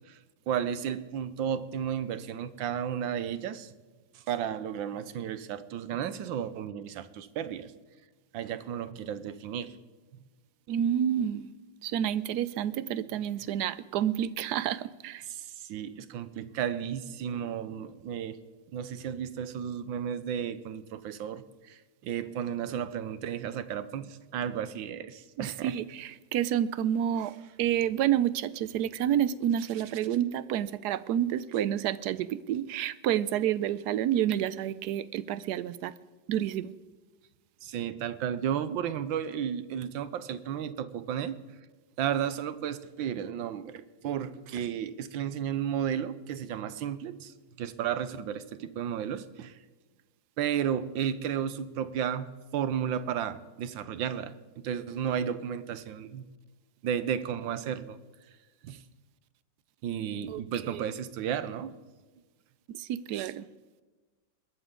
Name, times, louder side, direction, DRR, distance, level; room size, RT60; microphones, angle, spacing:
voice 1, 0.5-3.7 4.1-7.7 8.3-9.7 12.8-13.1 15.3-18.4 18.7-25.8 27.1-27.2 37.6-41.4 42.0-49.6 50.4-56.2 56.8-58.0 58.6-58.8 59.8-61.7 63.1-63.3, right 9 dB, 85° right, 14 dB, 1.6 m, -33 dB
voice 2, 10.7-11.5 11.8-15.2 25.4-35.9 36.3-36.7 60.3-60.4 60.7-60.8 62.7-63.5, right 10 dB, 70° right, 17 dB, 1.1 m, -29 dB
21.0 x 13.5 x 3.8 m, 1.3 s
omnidirectional pair, 2.0 m